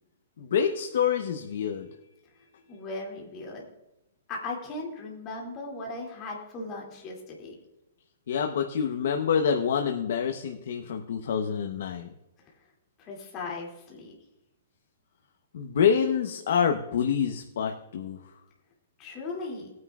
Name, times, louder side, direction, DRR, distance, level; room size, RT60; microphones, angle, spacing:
voice 1, 0.4-1.9 8.3-12.1 15.5-18.3, left 7 dB, 60° left, 4 dB, 0.9 m, -27 dB
voice 2, 2.7-3.6 4.3-7.5 13.0-14.1 19.0-19.7, left 3 dB, 20° left, -2 dB, 2.5 m, -37 dB
19.0 x 9.5 x 2.4 m, 0.95 s
hypercardioid pair, 170°, 0 cm